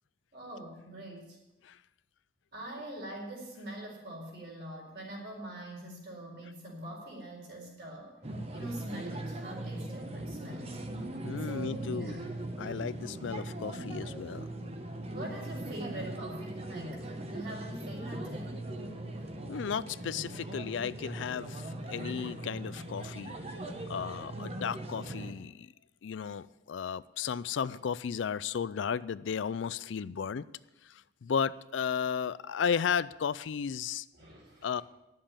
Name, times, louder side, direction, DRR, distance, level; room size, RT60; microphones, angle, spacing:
voice 1, 0.3-1.4 2.5-8.2 8.5-10.8 11.4-12.4 15.1-18.6 34.1-34.8, right 1 dB, 55° right, -1 dB, 4.3 m, -44 dB
sound 1, 8.2-25.3, right 1 dB, 30° right, 1.0 m, -40 dB
voice 2, 11.2-12.2 12.6-14.5 19.5-23.4 23.9-25.7 26.0-30.4 30.8-34.1 34.6-34.8, left 7 dB, 70° left, 17 dB, 0.4 m, -34 dB
11.0 x 7.5 x 8.7 m, 0.95 s
head